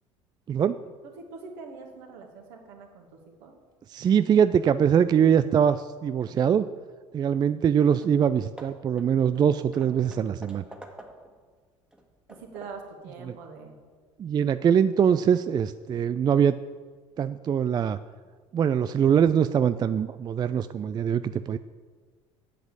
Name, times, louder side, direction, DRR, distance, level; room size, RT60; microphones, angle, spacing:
voice 1, 1.2-3.5 7.3-7.4 12.3-13.7, right 4 dB, 60° right, 2 dB, 2.2 m, -44 dB
voice 2, 3.9-6.7 7.1-10.6 13.3-13.4 14.2-16.6 17.2-18.0 18.5-21.6, right 8 dB, 25° right, 13 dB, 0.3 m, -23 dB
Hammer / Wood, 8.0-8.2 8.6-11.4 11.9-12.9, right 1 dB, 5° right, 1.7 m, -48 dB
8.3 x 8.1 x 8.6 m, 1.5 s
figure-of-eight pair, 60°, 17 cm